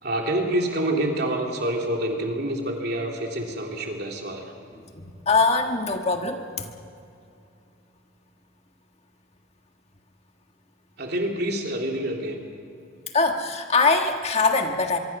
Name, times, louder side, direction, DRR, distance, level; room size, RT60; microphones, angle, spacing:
voice 1, 0.0-4.5 11.0-12.4, right 1 dB, 50° right, 1 dB, 3.3 m, -27 dB
voice 2, 4.9-6.7 13.1-15.0, left 3 dB, 30° left, 4 dB, 1.5 m, -22 dB
24.5 x 23.5 x 6.1 m, 2.5 s
head